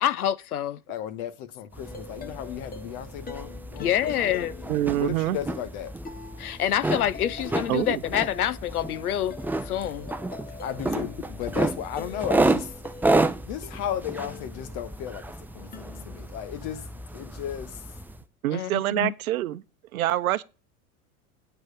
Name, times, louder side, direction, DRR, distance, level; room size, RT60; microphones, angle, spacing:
voice 1, 0.0-0.8 3.8-4.5 6.4-9.3 9.6-10.1 18.5-19.1, left 11 dB, 85° left, 0.6 m, -27 dB
voice 2, 0.9-4.5 4.9-5.9 10.5-12.7 13.4-15.2 15.5-16.8 17.1-17.8, left 10 dB, 55° left, 1.6 m, -35 dB
sound 1, 1.7-18.2, right 2 dB, 5° right, 0.6 m, -31 dB
sound 2, 1.8-15.2 15.7-16.9, left 4 dB, 20° left, 1.2 m, -45 dB
voice 3, 4.7-5.4 7.7-8.0 18.4-19.6 19.9-20.4, right 14 dB, 75° right, 0.7 m, -25 dB
9.2 x 6.4 x 5.0 m
hypercardioid pair, 85°, 43 cm